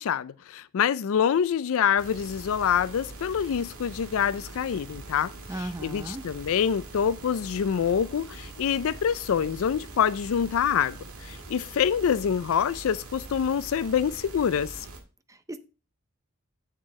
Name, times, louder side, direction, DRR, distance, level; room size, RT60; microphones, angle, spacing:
voice 1, 0.0-5.3 5.6-14.9, left 8 dB, 65° left, 0.4 m, -26 dB
sound 1, 2.0-15.0, right 2 dB, 75° right, 1.8 m, -43 dB
sound 2, 3.9-11.9, right 1 dB, 45° right, 1.7 m, -56 dB
voice 2, 5.5-6.2 15.3-15.6, right 1 dB, 15° right, 0.6 m, -36 dB
8.0 x 7.6 x 3.2 m
head